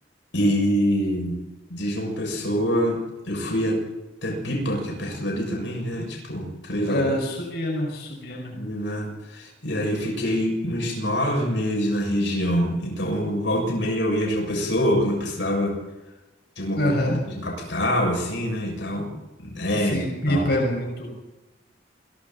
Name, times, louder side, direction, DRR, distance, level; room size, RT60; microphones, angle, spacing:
voice 1, 0.3-1.4 1.7-3.8 4.2-7.2 8.5-15.8 16.6-19.1 19.4-20.5, equal, 85° left, 1 dB, 6.8 m, -25 dB
voice 2, 6.9-8.6 16.7-17.2 19.8-21.1, left 1 dB, 60° left, 0 dB, 6.3 m, -25 dB
28.5 x 22.5 x 4.3 m, 1.0 s
head